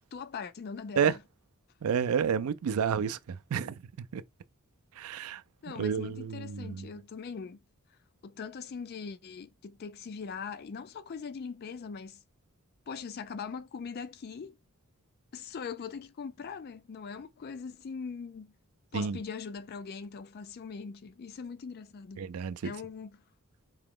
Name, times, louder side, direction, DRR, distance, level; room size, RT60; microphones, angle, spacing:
voice 1, 0.1-1.2 5.6-7.6 8.2-12.2 12.9-14.6 15.3-18.5 18.9-22.3 22.6-23.1, left 5 dB, 45° left, 0.3 m, -41 dB
voice 2, 1.8-4.2 4.9-5.4 5.8-6.9 18.9-19.2 22.2-22.7, right 7 dB, 75° right, 0.4 m, -30 dB
4.7 x 2.9 x 3.6 m
head